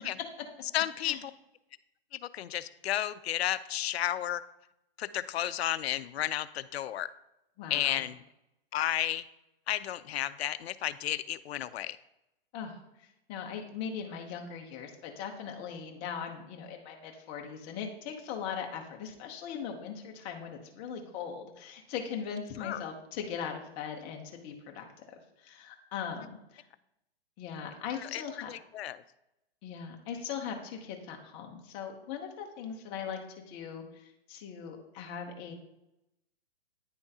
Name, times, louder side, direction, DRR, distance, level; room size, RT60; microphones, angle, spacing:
voice 1, 0.7-1.3 2.1-4.4 5.0-7.1 7.7-8.2 8.7-9.2 9.7-12.0 22.6-22.8 28.0-28.2 28.5-29.0, left 12 dB, 80° left, 15 dB, 0.5 m, -32 dB
voice 2, 7.6-8.0 12.5-24.9 25.1-26.6 27.4-28.7 29.6-35.5, left 7 dB, 20° left, 2 dB, 0.6 m, -40 dB
9.7 x 3.6 x 2.7 m, 0.87 s
hypercardioid pair, 155°, 31 cm